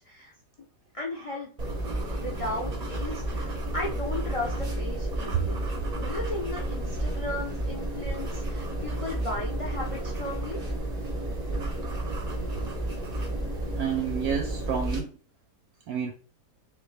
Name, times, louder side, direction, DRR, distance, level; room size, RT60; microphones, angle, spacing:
voice 1, 0.9-1.7 2.1-5.7 6.0-10.6, left 2 dB, 55° left, 0.3 m, -35 dB
sound 1, 1.6-15.0, right 1 dB, 40° right, 0.6 m, -31 dB
voice 2, 13.8-15.1 15.9-16.1, right 7 dB, 70° right, 1.0 m, -29 dB
3.5 x 3.5 x 3.2 m
omnidirectional pair, 1.8 m